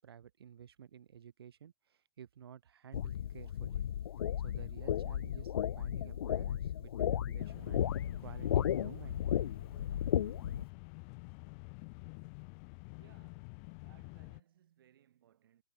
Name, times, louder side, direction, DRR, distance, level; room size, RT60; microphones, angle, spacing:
voice 1, 0.0-1.7 2.2-3.9 4.4-7.8 8.2-9.4, right 9 dB, 90° right, 6.8 m, -53 dB
sound 1, 2.9-10.6, left 10 dB, 85° left, 0.8 m, -34 dB
sound 2, 7.4-14.4, left 38 dB, 35° left, 2.6 m, -49 dB
voice 2, 13.0-15.6, right 11 dB, 65° right, 7.6 m, -67 dB
hypercardioid pair, 165°, 12 cm